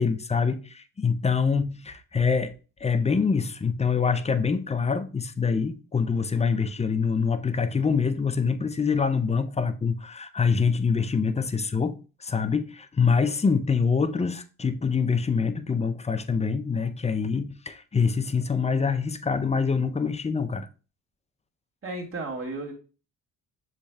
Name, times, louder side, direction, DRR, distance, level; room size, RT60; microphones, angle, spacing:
voice 1, 0.0-2.5 2.8-20.7, left 5 dB, 20° left, 0.5 m, -25 dB
voice 2, 21.8-22.7, right 2 dB, 35° right, 1.8 m, -33 dB
6.8 x 3.2 x 2.2 m
supercardioid pair, 65°, 37 cm